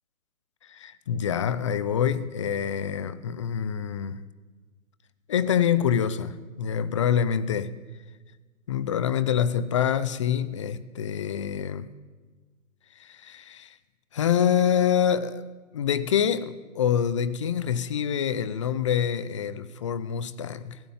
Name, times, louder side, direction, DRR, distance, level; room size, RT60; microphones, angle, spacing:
voice 1, 0.6-4.2 5.3-7.7 8.7-11.9 13.0-13.8 14.1-15.5 15.7-20.8, left 8 dB, 25° left, 15 dB, 0.6 m, -26 dB
19.0 x 16.0 x 9.2 m, 1.3 s
hypercardioid pair, 155°, 41 cm